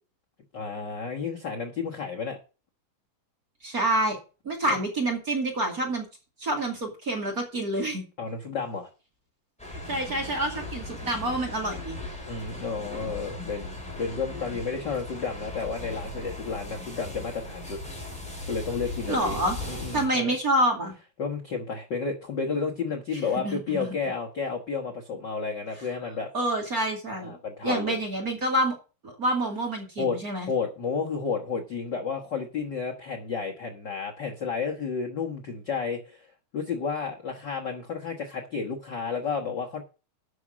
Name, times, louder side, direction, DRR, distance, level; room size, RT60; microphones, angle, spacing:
voice 1, 0.5-2.4 4.6-4.8 8.2-8.9 12.3-17.8 18.5-20.3 21.2-26.3 27.1-28.0 30.0-39.8, left 5 dB, 70° left, 0 dB, 1.0 m, -32 dB
voice 2, 3.6-4.2 4.4-6.1 6.4-8.0 9.7-12.0 19.1-19.6 19.9-20.9 23.4-24.0 26.3-27.4 27.6-28.8 29.0-30.5, right 1 dB, 30° right, 1 dB, 2.3 m, -27 dB
sound 1, 9.6-20.1, left 2 dB, ahead, 3.0 m, -38 dB
9.4 x 6.2 x 7.3 m, 0.34 s
omnidirectional pair, 4.2 m